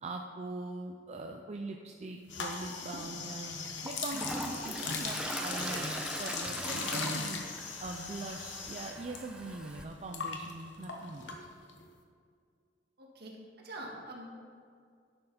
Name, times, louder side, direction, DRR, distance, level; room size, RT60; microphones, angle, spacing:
voice 1, 0.0-3.6 3.8-7.4 7.8-11.3, right 2 dB, 40° right, 2 dB, 0.5 m, -42 dB
sound 1, 2.3-9.2 9.4-11.8, left 4 dB, 85° left, 1.1 m, -39 dB
Toilet flush, 3.0-3.1 3.6-9.8, right 1 dB, 5° right, 0.7 m, -41 dB
voice 2, 13.0-14.3, right 1 dB, 60° right, -1 dB, 1.8 m, -45 dB
11.5 x 6.6 x 4.2 m, 2.2 s
head